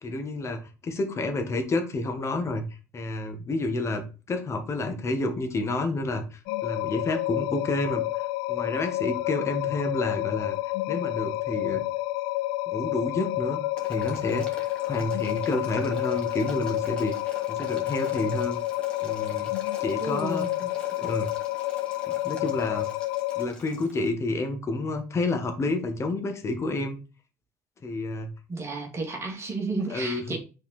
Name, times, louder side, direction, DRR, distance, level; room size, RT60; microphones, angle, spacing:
voice 1, 0.0-2.7 2.9-10.6 10.9-11.8 12.7-17.2 17.5-18.6 19.0-19.5 19.8-21.3 22.2-22.9 23.3-27.0 27.8-28.3 29.9-30.4, left 2 dB, 30° left, 1.6 m, -30 dB
sound 1, 6.5-23.5, left 17 dB, 60° left, 0.4 m, -29 dB
Boiling, 13.8-24.1, left 1 dB, 10° left, 2.5 m, -46 dB
voice 2, 20.0-20.5 28.5-30.4, right 3 dB, 30° right, 2.3 m, -32 dB
5.9 x 4.2 x 4.3 m
figure-of-eight pair, 65°, 9 cm